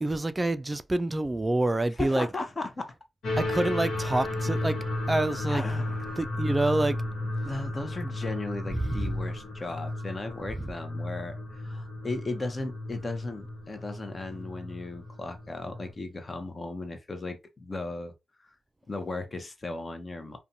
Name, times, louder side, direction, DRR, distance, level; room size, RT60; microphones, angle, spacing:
voice 1, 0.0-2.3 3.4-4.8 5.1-5.6 6.2-7.0 8.0-8.1 8.7-9.0 10.6-10.7, right 2 dB, 20° right, 0.3 m, -27 dB
voice 2, 2.0-2.9 5.5-6.2 7.4-18.1 18.9-20.4, left 2 dB, 35° left, 0.7 m, -36 dB
sound 1, 3.2-15.9, left 1 dB, 80° left, 1.0 m, -33 dB
2.6 x 2.2 x 2.7 m
cardioid pair, 60°, 0 cm